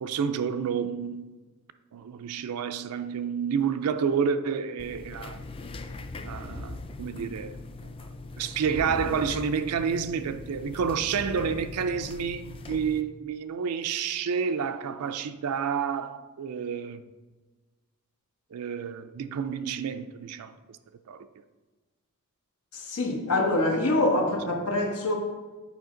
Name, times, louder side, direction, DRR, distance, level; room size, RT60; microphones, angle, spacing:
voice 1, 0.0-1.4 1.9-5.4 6.2-7.6 7.8-7.9 8.4-17.0 18.5-20.8 21.1-21.3, right 6 dB, 80° right, 0.4 m, -29 dB
sound 1, 4.8-13.0, left 2 dB, 25° left, 0.4 m, -40 dB
voice 2, 22.7-25.1, left 2 dB, 85° left, 1.2 m, -25 dB
8.0 x 5.0 x 3.8 m
head